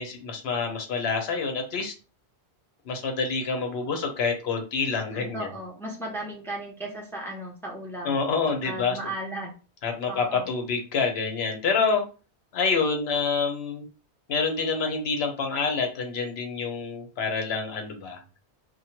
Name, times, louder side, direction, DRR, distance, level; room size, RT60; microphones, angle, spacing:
voice 1, 0.0-1.9 2.9-5.5 8.0-9.0 9.8-12.0 12.5-13.9 14.3-18.2, left 5 dB, 70° left, 5 dB, 0.9 m, -27 dB
voice 2, 5.1-8.2 8.6-9.5 10.1-10.5, right 1 dB, 5° left, -1 dB, 0.4 m, -36 dB
2.9 x 2.2 x 2.8 m, 0.34 s
omnidirectional pair, 1.1 m